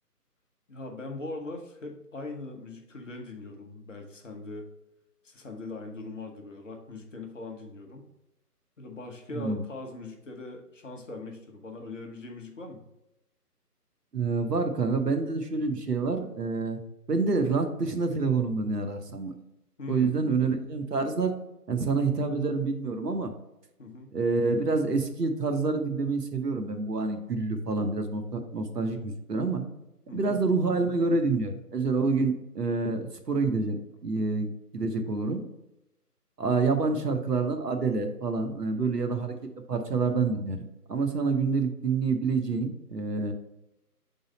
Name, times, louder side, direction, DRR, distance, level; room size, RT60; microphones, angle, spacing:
voice 1, 0.7-4.7 5.2-8.1 8.8-12.8 19.8-20.2 23.8-24.1 30.1-30.4, left 3 dB, 50° left, 3 dB, 1.1 m, -40 dB
voice 2, 14.1-16.8 17.1-19.3 19.9-21.3 21.7-23.3 24.1-29.6 30.1-35.4 36.4-39.3 39.7-40.6 40.9-43.3, right 4 dB, 80° right, 6 dB, 1.0 m, -27 dB
4.9 x 4.0 x 5.3 m, 0.90 s
figure-of-eight pair, 155°, 48 cm